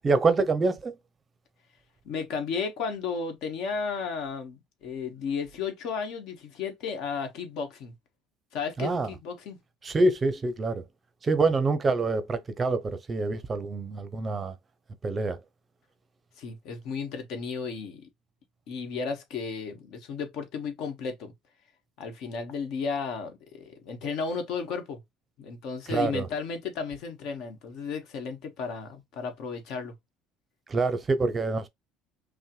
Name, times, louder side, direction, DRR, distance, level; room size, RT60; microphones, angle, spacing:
voice 1, 0.0-0.9 8.8-9.1 9.8-10.8 11.2-14.5 15.0-15.4 25.9-26.3 30.7-31.7, right 3 dB, 25° right, 0.6 m, -26 dB
voice 2, 2.0-7.9 8.5-9.6 16.4-18.1 18.7-21.3 22.0-25.0 25.4-29.9, left 5 dB, 65° left, 1.3 m, -34 dB
5.5 x 2.1 x 3.0 m
cardioid pair, 130°, 0 cm